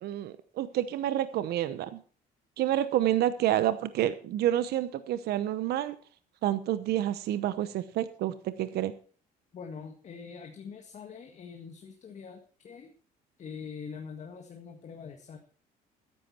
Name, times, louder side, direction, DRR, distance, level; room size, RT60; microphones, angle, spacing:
voice 1, 0.0-2.0 2.6-5.9 6.4-8.9, right 12 dB, 75° right, 13 dB, 0.9 m, -29 dB
voice 2, 9.5-12.9 13.4-15.4, left 6 dB, 45° left, 4 dB, 1.8 m, -44 dB
13.5 x 10.5 x 4.4 m, 0.42 s
cardioid pair, 110°, 17 cm